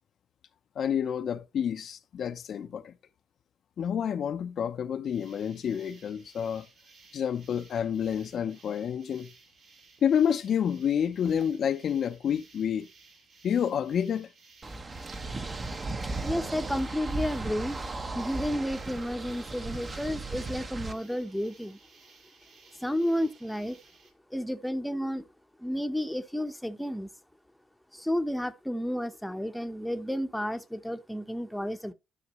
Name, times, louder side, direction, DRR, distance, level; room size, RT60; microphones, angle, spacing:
voice 1, 0.8-2.9 3.8-6.7 7.1-9.3 10.0-12.9 13.4-14.3, left 8 dB, 60° left, 0.7 m, -29 dB
sound 1, 5.0-24.1, right 4 dB, 65° right, 6.1 m, -58 dB
sound 2, 14.6-20.9, right 2 dB, 30° right, 1.0 m, -36 dB
voice 2, 16.2-17.8 18.1-21.8 22.8-23.8 24.3-25.3 25.6-27.1 27.9-31.9, equal, ahead, 0.9 m, -31 dB
12.5 x 5.9 x 3.0 m
cardioid pair, 90°, 0 cm